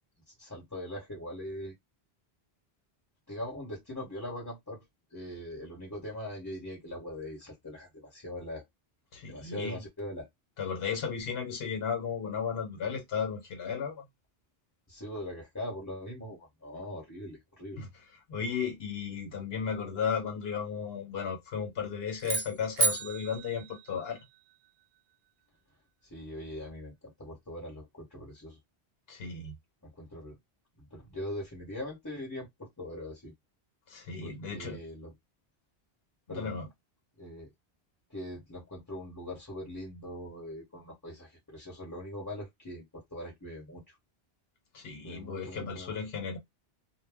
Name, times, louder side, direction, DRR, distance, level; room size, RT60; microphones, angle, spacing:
voice 1, 0.4-1.7 3.3-4.8 5.1-8.6 9.3-10.3 14.9-17.8 26.0-28.6 29.8-30.4 30.8-33.3 34.2-35.1 36.3-36.5 37.2-37.5 38.1-44.0 45.0-45.9, left 1 dB, 20° left, 1.0 m, -41 dB
voice 2, 9.1-9.8 10.6-14.0 17.8-17.9 18.3-24.2 29.1-29.5 33.9-34.8 36.3-36.7 44.7-46.4, left 6 dB, 70° left, 1.0 m, -34 dB
sound 1, 22.2-24.5, right 4 dB, 60° right, 0.8 m, -32 dB
2.3 x 2.1 x 3.4 m
omnidirectional pair, 1.1 m